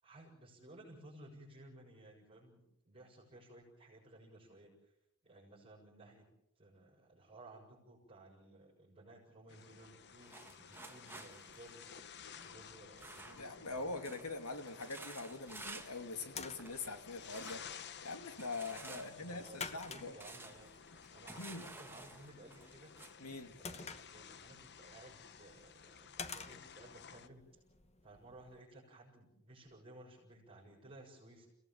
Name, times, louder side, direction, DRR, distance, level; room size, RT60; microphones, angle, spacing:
voice 1, 0.0-4.9 5.2-6.3 6.6-12.0 12.4-14.0 18.9-20.7 21.1-22.9 23.6-27.6 28.0-31.5, right 1 dB, 25° right, -4 dB, 6.9 m, -57 dB
sound 1, 9.5-27.3, left 7 dB, 50° left, 0.9 m, -55 dB
sound 2, 10.2-13.7 14.0-14.3 14.6-16.0 16.3-16.9 17.3-17.7 18.4-23.1, right 3 dB, 10° right, 1.7 m, -53 dB
voice 2, 13.4-20.1 21.4-21.6 23.2-23.5, left 3 dB, 80° left, 7 dB, 2.7 m, -44 dB
sound 3, 15.8-28.6, left 5 dB, 30° left, 1.2 m, -52 dB
30.0 x 17.5 x 7.4 m, 0.85 s
head